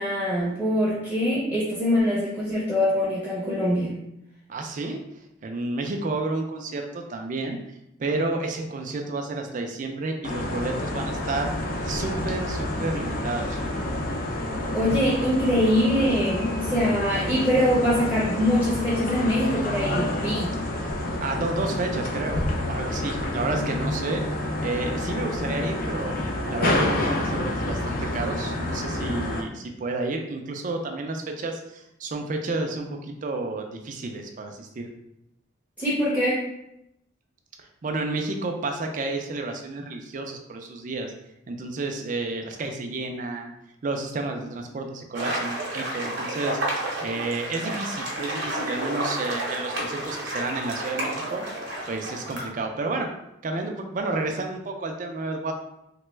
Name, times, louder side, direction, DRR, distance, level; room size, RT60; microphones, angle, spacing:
voice 1, 0.0-3.9 14.7-20.5 35.8-36.4, equal, 5° left, -8 dB, 0.7 m, -23 dB
voice 2, 4.5-5.0 5.4-7.6 8.0-11.5 11.8-13.6 21.2-24.2 24.6-26.2 26.5-34.9 37.6-41.1 41.5-43.5 43.8-51.4 51.9-53.1 53.4-55.5, right 2 dB, 40° right, 4 dB, 0.4 m, -31 dB
sound 1, 10.2-29.4, left 1 dB, 45° left, 0.4 m, -28 dB
sound 2, 45.1-52.5, right 1 dB, 60° right, 0.8 m, -31 dB
3.2 x 2.2 x 3.1 m, 0.82 s
head